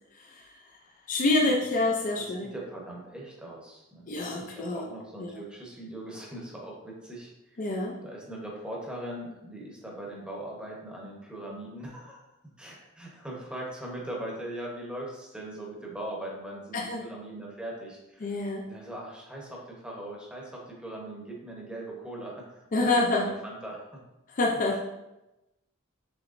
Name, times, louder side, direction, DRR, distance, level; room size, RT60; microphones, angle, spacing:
voice 1, 0.1-0.6 1.1-2.5 4.1-4.8 5.2-5.4 7.6-8.0 16.7-17.0 18.2-18.7 22.7-23.3 24.4-24.8, left 2 dB, 35° left, -1 dB, 0.5 m, -27 dB
voice 2, 1.4-1.8 2.2-12.2 12.6-18.4 18.7-23.9, right 1 dB, 5° right, -3 dB, 0.9 m, -40 dB
6.2 x 3.1 x 2.5 m, 0.96 s
head